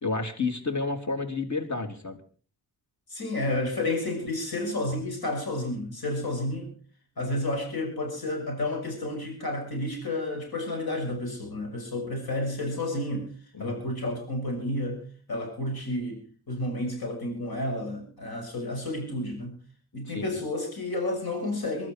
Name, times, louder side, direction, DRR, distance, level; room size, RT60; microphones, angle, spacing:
voice 1, 0.0-2.2 13.6-13.9 20.1-20.4, left 3 dB, 50° left, 4 dB, 3.6 m, -31 dB
voice 2, 3.1-6.7 7.2-13.3 13.6-15.0 15.3-19.6 19.9-21.9, left 1 dB, 80° left, 2 dB, 6.7 m, -31 dB
23.5 x 12.5 x 4.6 m, 0.41 s
wide cardioid pair, 90°, 36 cm